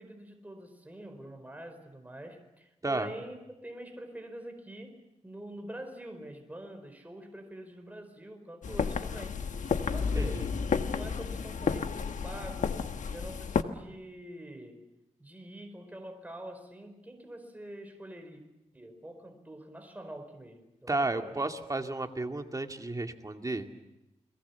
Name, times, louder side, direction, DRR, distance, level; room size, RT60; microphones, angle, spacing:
voice 1, 0.0-9.4 9.8-10.5 10.9-12.8 13.1-14.9 15.2-18.4 18.7-21.5, right 1 dB, 15° right, 5 dB, 4.6 m, -45 dB
sound 1, 8.6-13.6, left 5 dB, 85° left, 1.2 m, -31 dB
voice 2, 20.9-23.7, right 2 dB, 30° right, 4 dB, 2.3 m, -32 dB
30.0 x 22.0 x 7.1 m, 0.95 s
wide cardioid pair, 75°, 12 cm